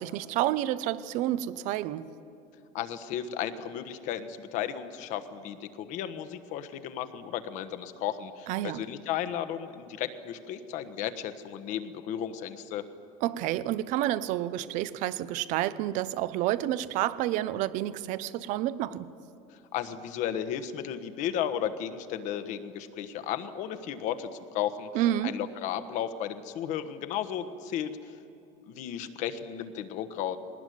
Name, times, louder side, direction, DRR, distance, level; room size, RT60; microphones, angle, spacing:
voice 1, 0.0-2.1 8.5-8.8 13.2-19.1 24.9-25.3, right 13 dB, 55° right, 0.8 m, -29 dB
voice 2, 2.7-12.8 19.7-24.9 25.2-28.0 28.7-30.4, left 10 dB, 55° left, 1.3 m, -34 dB
21.0 x 19.0 x 9.4 m
cardioid pair, 170°, 15 cm